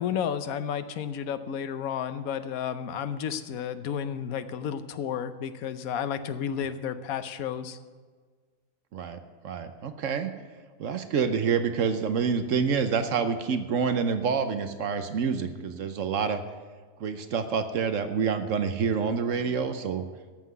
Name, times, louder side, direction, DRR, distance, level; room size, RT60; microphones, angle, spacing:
voice 1, 0.0-7.8, left 8 dB, 80° left, 12 dB, 1.2 m, -32 dB
voice 2, 9.4-10.3 10.8-16.4 17.0-20.1, right 6 dB, 65° right, 9 dB, 1.1 m, -27 dB
14.0 x 5.8 x 9.3 m, 1.5 s
omnidirectional pair, 1.5 m